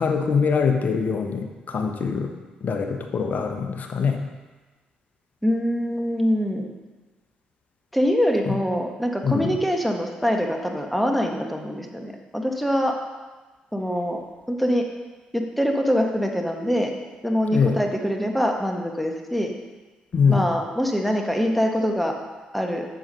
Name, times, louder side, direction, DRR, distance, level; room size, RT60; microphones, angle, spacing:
voice 1, 0.0-2.3 2.6-4.2 8.5-8.6 9.2-9.6 17.5-17.7 20.1-20.4, left 5 dB, 45° left, 4 dB, 1.1 m, -23 dB
voice 2, 5.4-6.7 7.9-12.9 13.7-14.2 14.5-14.8 15.3-16.9 17.2-19.5 20.3-22.1 22.5-22.8, equal, ahead, 2 dB, 1.5 m, -24 dB
7.8 x 7.3 x 5.4 m, 1.3 s
figure-of-eight pair, 45°, 4 cm